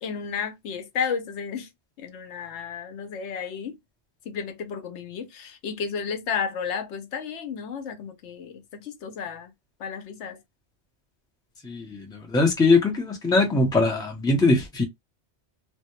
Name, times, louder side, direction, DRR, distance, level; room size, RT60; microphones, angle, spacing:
voice 1, 0.0-1.7 2.0-3.7 4.3-9.5 9.8-10.4, left 6 dB, 80° left, 0.9 m, -32 dB
voice 2, 11.6-14.8, left 3 dB, 5° left, 0.5 m, -21 dB
2.2 x 2.1 x 2.9 m
omnidirectional pair, 1.2 m